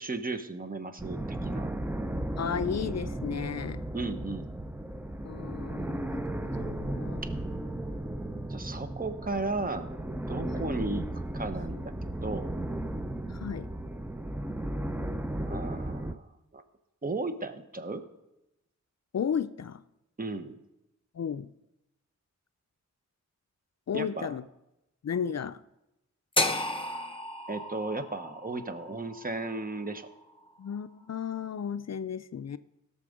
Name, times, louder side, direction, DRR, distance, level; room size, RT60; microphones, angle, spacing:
voice 1, 0.0-1.7 3.9-4.5 8.5-10.0 10.3-12.5 15.5-16.3 16.5-16.6 17.0-18.0 20.2-20.6 23.9-24.4 27.5-30.1, right 3 dB, 30° right, 0.9 m, -35 dB
sound 1, 1.0-16.1, right 1 dB, 5° right, 0.4 m, -35 dB
voice 2, 2.4-3.8 5.2-7.2 10.5-10.7 13.3-13.7 19.1-19.8 21.1-21.5 23.9-24.5 25.0-25.6 30.6-32.6, left 7 dB, 55° left, 0.4 m, -34 dB
sound 2, 26.4-30.5, left 2 dB, 15° left, 0.9 m, -33 dB
17.0 x 6.7 x 5.2 m
wide cardioid pair, 85°, 31 cm